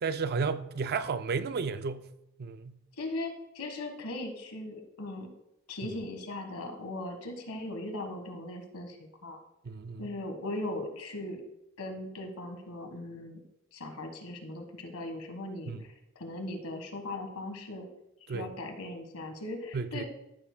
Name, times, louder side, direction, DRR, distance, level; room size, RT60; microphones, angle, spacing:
voice 1, 0.0-2.1 2.4-2.8 5.9-6.0 9.6-10.1 15.7-15.9 18.3-18.5 19.7-20.0, right 5 dB, 45° right, 0.4 m, -33 dB
voice 2, 3.0-5.3 5.7-9.4 10.0-11.4 11.8-13.4 13.7-15.9 16.2-17.9 18.3-20.0, left 2 dB, 80° left, 1.5 m, -39 dB
14.0 x 7.1 x 2.2 m
head